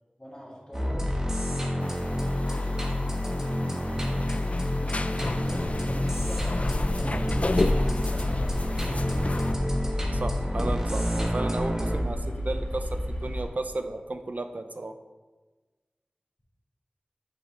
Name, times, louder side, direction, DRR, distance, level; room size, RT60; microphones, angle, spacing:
voice 1, 0.2-1.1 2.1-3.6 4.5-8.7, equal, 30° left, -5 dB, 2.2 m, -44 dB
sound 1, 0.7-12.0, left 1 dB, 20° right, 1.2 m, -29 dB
sound 2, 1.8-9.5, left 2 dB, 45° left, 0.3 m, -31 dB
sound 3, 6.1-13.5, equal, 90° left, 1.8 m, -34 dB
voice 2, 10.1-14.9, right 2 dB, 60° right, 7 dB, 0.4 m, -34 dB
7.9 x 4.1 x 3.7 m, 1.2 s
wide cardioid pair, 45°, 3 cm